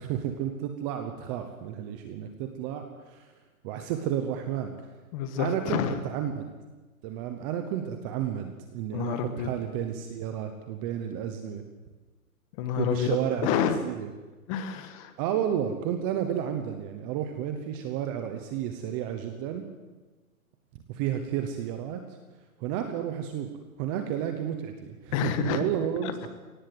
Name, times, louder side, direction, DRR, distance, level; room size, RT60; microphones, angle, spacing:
voice 1, 0.0-3.3 3.6-4.7 5.4-6.5 7.0-11.6 12.8-14.1 15.2-19.6 20.9-22.0 22.6-23.5 23.8-26.1, right 10 dB, 15° right, 6 dB, 0.8 m, -31 dB
voice 2, 5.1-6.0 8.9-9.5 12.6-13.1 13.4-13.8 14.5-15.1 25.1-25.6 26.0-26.3, left 8 dB, 25° left, 10 dB, 1.4 m, -28 dB
22.5 x 18.0 x 7.8 m, 1.2 s
hypercardioid pair, 155°, 44 cm